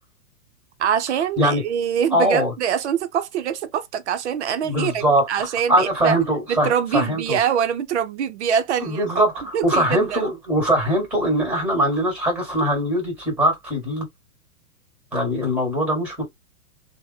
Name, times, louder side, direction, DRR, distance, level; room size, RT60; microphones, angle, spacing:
voice 1, 0.8-6.2 6.5-9.3 9.5-10.2, right 8 dB, 55° right, 0.5 m, -24 dB
voice 2, 2.1-2.5 4.6-7.4 8.8-14.0 15.1-16.3, equal, 5° right, 1.5 m, -21 dB
3.2 x 2.1 x 2.6 m
hypercardioid pair, 150°, 43 cm